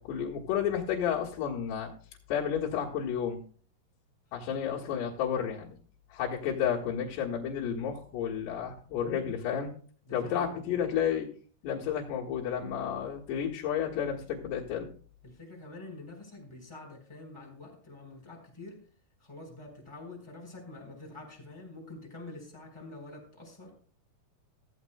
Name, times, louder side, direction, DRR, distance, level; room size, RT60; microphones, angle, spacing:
voice 1, 0.0-1.9 2.3-3.4 4.3-5.8 6.1-9.7 10.1-11.3 11.6-14.9, left 8 dB, 80° left, -4 dB, 3.7 m, -31 dB
voice 2, 10.0-10.8 15.2-18.8 19.2-23.8, left 2 dB, 5° left, 0 dB, 3.8 m, -47 dB
15.5 x 15.0 x 2.3 m, 0.43 s
omnidirectional pair, 4.8 m